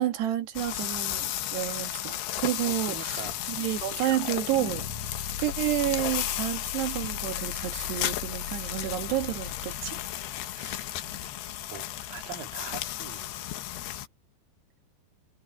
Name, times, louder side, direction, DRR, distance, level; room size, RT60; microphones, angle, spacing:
voice 1, 0.0-3.2 3.5-4.9 5.4-10.0, right 13 dB, 85° right, 4.0 m, -30 dB
sound 1, 0.5-14.1, left 13 dB, 80° left, 3.3 m, -34 dB
voice 2, 2.6-3.4 10.5-11.3 11.7-13.5, right 7 dB, 60° right, 4.0 m, -43 dB
sound 2, 3.6-10.8, left 8 dB, 60° left, 2.3 m, -41 dB
omnidirectional pair, 4.7 m